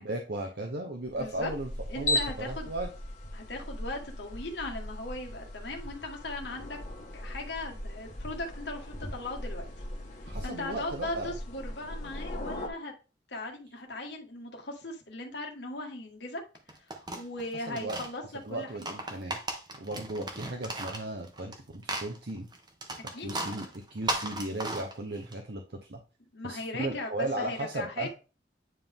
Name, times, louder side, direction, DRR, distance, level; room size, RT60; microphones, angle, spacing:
voice 1, 0.0-2.9 10.2-11.3 17.7-18.0 18.4-19.4 19.8-22.5 23.2-26.0 26.4-28.1, right 1 dB, 60° right, 0.9 m, -36 dB
sound 1, 1.1-12.7, left 1 dB, 40° left, 1.5 m, -38 dB
voice 2, 1.2-1.5 1.9-2.7 3.3-6.8 7.1-9.7 10.4-12.9 13.3-16.4 16.8-16.9 17.1-18.7 23.1-23.4 26.3-28.1, left 2 dB, 70° left, 1.5 m, -38 dB
sound 2, 16.5-18.1 18.7-21.6 21.8-25.3, right 2 dB, 25° right, 1.1 m, -36 dB
9.4 x 3.8 x 3.5 m
head